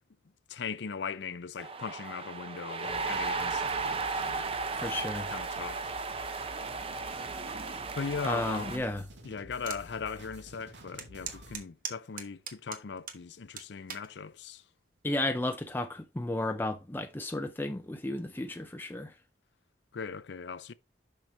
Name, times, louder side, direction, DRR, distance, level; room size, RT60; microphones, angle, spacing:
voice 1, 0.5-4.5 4.9-5.0 5.3-5.8 7.9-8.8 9.2-14.6 19.9-20.7, left 5 dB, 75° left, 0.5 m, -39 dB
sound 1, 1.6-8.8, right 4 dB, 35° right, 0.7 m, -35 dB
sound 2, 2.8-11.5, equal, 90° right, 2.2 m, -50 dB
voice 2, 4.8-5.3 8.2-9.1 15.0-19.1, left 1 dB, 10° left, 0.5 m, -33 dB
sound 3, 9.7-9.8 10.3-10.4 11.0-13.2 13.6-14.1 14.8-15.1, right 7 dB, 50° right, 1.2 m, -40 dB
6.1 x 5.9 x 4.3 m
head